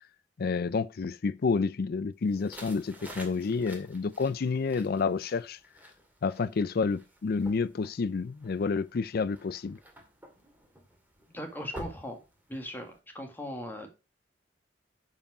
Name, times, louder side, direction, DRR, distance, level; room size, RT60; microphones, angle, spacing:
voice 1, 0.4-5.6 6.2-9.8, left 4 dB, 55° left, 0.4 m, -29 dB
sound 1, 2.3-13.0, right 1 dB, 10° right, 2.3 m, -50 dB
voice 2, 11.3-12.2 12.5-13.9, left 1 dB, 10° left, 1.9 m, -39 dB
11.0 x 4.9 x 4.9 m
head